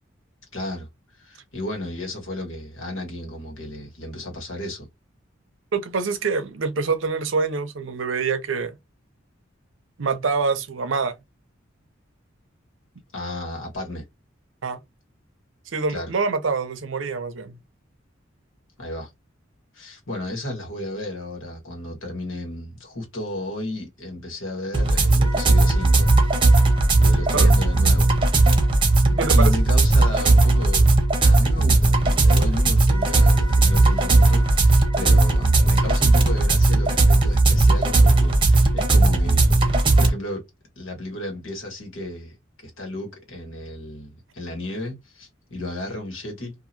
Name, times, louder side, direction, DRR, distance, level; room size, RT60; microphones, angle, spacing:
voice 1, 0.5-0.9 1.2-4.9 13.1-14.0 15.9-16.1 18.8-19.1 19.7-26.1 27.0-28.1 29.3-30.9 31.2-40.5 40.7-46.5, left 1 dB, 85° left, 1.6 m, -33 dB
voice 2, 5.7-8.7 10.0-11.1 14.6-14.8 15.7-17.5 27.3-27.5 29.1-29.5, right 4 dB, 70° right, 0.6 m, -25 dB
sound 1, 24.7-40.1, right 2 dB, 25° right, 0.8 m, -17 dB
2.8 x 2.6 x 2.5 m
head